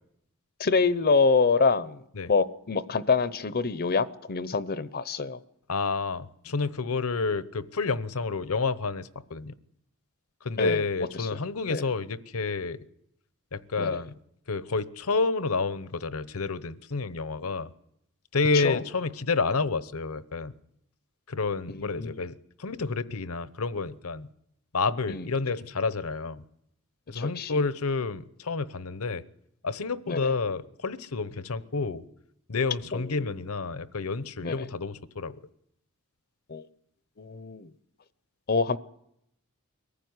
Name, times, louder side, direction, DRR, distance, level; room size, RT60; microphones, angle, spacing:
voice 1, 0.6-2.0 2.3-5.4 10.6-10.8 11.2-11.4 11.7-11.8 13.8-14.0 18.5-18.8 21.7-22.2 25.1-25.3 27.1-27.6 30.1-30.3 32.9-33.3 34.4-34.7 36.5-36.7 37.2-37.7 38.5-38.8, left 4 dB, 45° left, 15 dB, 0.7 m, -26 dB
voice 2, 5.7-9.5 10.4-12.8 13.5-14.1 14.5-17.7 18.3-20.5 21.3-24.3 24.7-26.4 27.1-29.2 29.6-32.0 32.5-35.3, left 4 dB, 70° left, 15 dB, 0.9 m, -29 dB
23.0 x 15.0 x 9.6 m, 0.78 s
head